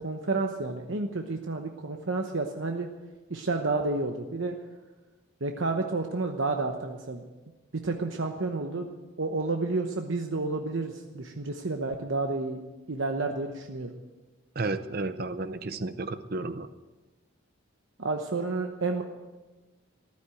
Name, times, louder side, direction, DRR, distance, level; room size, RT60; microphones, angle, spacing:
voice 1, 0.0-2.9 3.3-4.6 5.4-7.2 7.8-8.9 9.2-12.6 12.9-13.9 18.0-19.0, right 3 dB, 65° right, 4 dB, 1.0 m, -30 dB
voice 2, 14.6-16.7, right 3 dB, 45° right, 11 dB, 0.6 m, -32 dB
14.5 x 12.0 x 7.8 m, 1.2 s
head